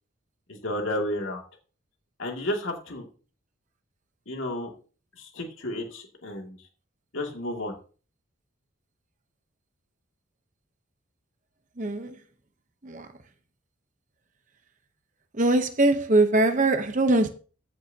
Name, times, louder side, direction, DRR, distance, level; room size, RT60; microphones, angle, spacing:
voice 1, 0.5-1.4 2.2-3.1 4.3-4.7 5.2-6.6 7.1-7.7, left 1 dB, 65° left, 2.4 m, -32 dB
voice 2, 11.8-12.2 12.8-13.1 15.3-17.3, right 2 dB, 35° right, 0.8 m, -22 dB
14.5 x 7.7 x 2.8 m
head